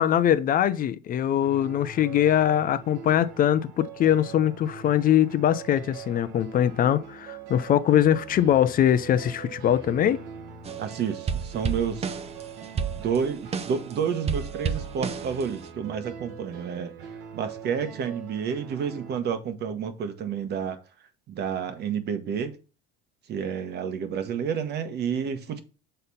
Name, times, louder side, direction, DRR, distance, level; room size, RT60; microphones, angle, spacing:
voice 1, 0.0-10.2, left 10 dB, 45° left, 0.5 m, -22 dB
sound 1, 1.4-19.2, right 7 dB, 80° right, 1.4 m, -42 dB
sound 2, 10.6-10.9 11.3-13.9 14.3-15.7, right 6 dB, 30° right, 0.7 m, -31 dB
voice 2, 10.8-12.2 12.7-16.9 17.3-20.8 21.3-22.6 23.3-25.6, right 7 dB, 55° right, 1.3 m, -30 dB
6.7 x 4.0 x 5.5 m
supercardioid pair, 105°, 21 cm